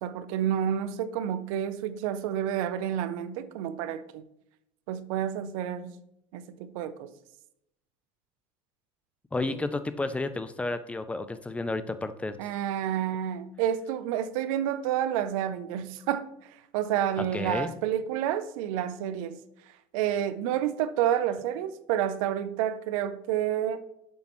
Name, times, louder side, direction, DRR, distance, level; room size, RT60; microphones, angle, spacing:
voice 1, 0.0-4.2 4.9-5.9 6.3-7.1 12.4-16.3 16.7-19.4 19.9-23.8, right 10 dB, 90° right, 0.6 m, -29 dB
voice 2, 9.3-12.4 17.2-17.7, left 2 dB, 5° left, 0.4 m, -31 dB
7.7 x 7.4 x 3.1 m
cardioid pair, 140°, 17 cm